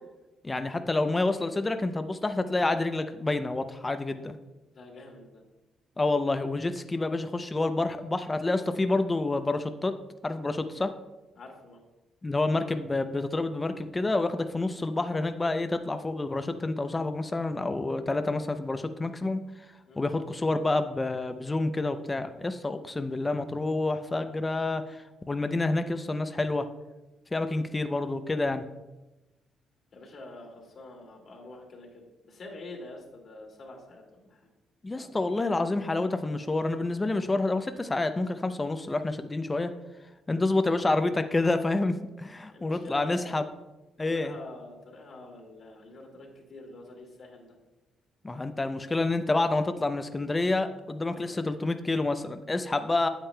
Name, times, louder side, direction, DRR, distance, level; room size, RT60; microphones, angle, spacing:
voice 1, 0.4-4.4 6.0-9.9 10.2-10.9 12.2-19.4 20.0-26.7 27.3-28.7 34.8-39.7 40.3-43.4 44.0-44.4 48.2-53.1, left 2 dB, 20° left, 9 dB, 0.5 m, -28 dB
voice 2, 4.7-5.4 11.4-11.8 19.9-20.0 29.9-34.5 34.9-35.1 42.5-43.3 44.0-47.6 51.1-51.4, left 2 dB, 55° left, -1 dB, 1.9 m, -46 dB
8.9 x 8.2 x 2.2 m, 1.0 s
cardioid pair, 90°, 0 cm